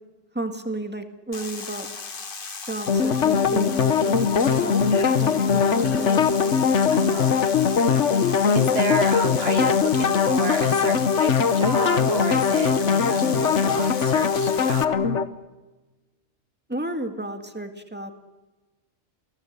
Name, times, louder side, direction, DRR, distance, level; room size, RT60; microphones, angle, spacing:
voice 1, 0.3-1.9 2.7-6.3 16.7-18.1, right 2 dB, 10° right, 6 dB, 1.9 m, -33 dB
sound 1, 1.3-14.8, left 4 dB, 45° left, 1.5 m, -36 dB
sound 2, 2.9-15.3, left 6 dB, 65° left, 1.4 m, -21 dB
voice 2, 6.9-7.4 8.0-15.0, right 4 dB, 55° right, 9 dB, 1.2 m, -31 dB
29.0 x 18.5 x 8.1 m, 1.2 s
omnidirectional pair, 1.3 m